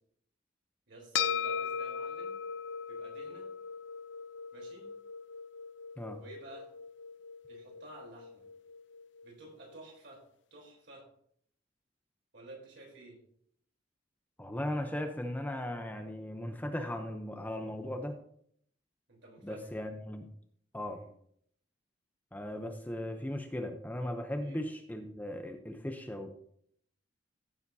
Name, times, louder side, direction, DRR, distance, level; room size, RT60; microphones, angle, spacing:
voice 1, 0.9-2.3 2.9-3.5 4.5-4.9 6.2-6.7 7.5-8.4 9.2-10.2 10.5-11.1 12.3-13.2 19.1-19.7 20.9-21.1 24.4-24.7, right 2 dB, 60° right, -1 dB, 3.6 m, -52 dB
sound 1, 1.1-9.7, left 7 dB, 65° left, 0.6 m, -39 dB
voice 2, 14.4-18.2 19.4-20.3 20.7-21.0 22.3-26.4, left 1 dB, 10° left, 5 dB, 0.6 m, -37 dB
15.0 x 7.1 x 2.7 m, 0.66 s
head